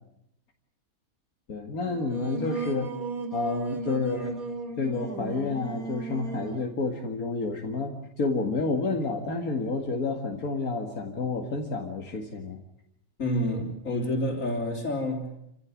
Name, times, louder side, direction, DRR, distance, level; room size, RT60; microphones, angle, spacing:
voice 1, 1.5-2.9 3.3-4.4 4.8-12.6, left 3 dB, 90° left, 2 dB, 2.5 m, -30 dB
Singing, 1.8-6.7, right 3 dB, 80° right, 2.7 m, -35 dB
voice 2, 13.2-15.3, left 1 dB, 65° left, -5 dB, 4.3 m, -28 dB
28.0 x 16.5 x 9.7 m, 0.79 s
omnidirectional pair, 1.5 m